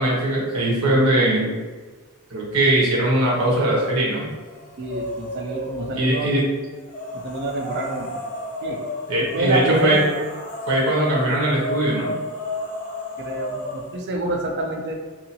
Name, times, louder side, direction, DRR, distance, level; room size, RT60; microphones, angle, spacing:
voice 1, 0.0-1.5 2.3-4.3 5.9-6.4 9.1-10.0 10.7-12.1, right 1 dB, 80° right, -5 dB, 1.0 m, -20 dB
sound 1, 3.3-3.9 4.3-6.1 6.8-14.0, left 1 dB, 40° left, 0.6 m, -32 dB
voice 2, 4.8-6.5 7.1-8.2 8.6-8.8 9.2-10.1 13.2-14.9, right 2 dB, 50° right, 1 dB, 0.5 m, -27 dB
2.8 x 2.4 x 2.7 m, 1.4 s
head